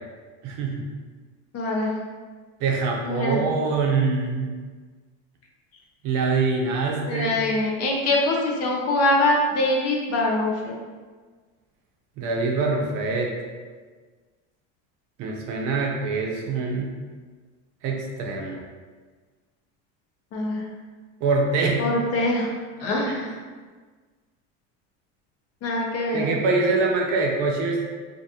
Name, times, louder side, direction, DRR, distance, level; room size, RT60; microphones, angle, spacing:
voice 1, 0.4-0.9 2.6-4.5 6.0-7.4 12.2-13.3 15.2-16.9 17.8-18.6 21.2-21.8 23.1-23.2 26.1-27.8, right 4 dB, 55° right, 0 dB, 0.6 m, -24 dB
voice 2, 1.5-1.9 3.0-3.4 7.1-10.7 20.3-20.7 21.8-22.5 22.8-23.4 25.6-26.3, left 2 dB, 40° left, -1 dB, 0.5 m, -23 dB
2.5 x 2.2 x 2.7 m, 1.4 s
supercardioid pair, 125°, 37 cm